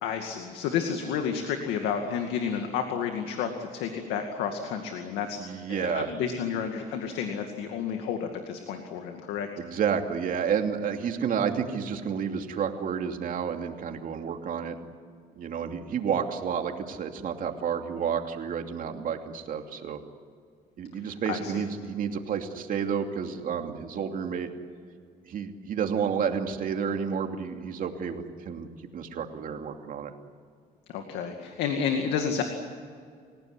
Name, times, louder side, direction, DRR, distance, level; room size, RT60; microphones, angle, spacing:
voice 1, 0.0-5.4 5.7-9.5 21.3-21.6 30.9-32.4, left 7 dB, 90° left, 4 dB, 2.3 m, -31 dB
voice 2, 5.4-6.1 9.6-14.8 15.4-20.0 20.8-24.5 25.3-28.7 28.9-30.1, right 7 dB, 55° right, 4 dB, 2.8 m, -30 dB
28.5 x 17.0 x 9.9 m, 2.2 s
cardioid pair, 110°, 17 cm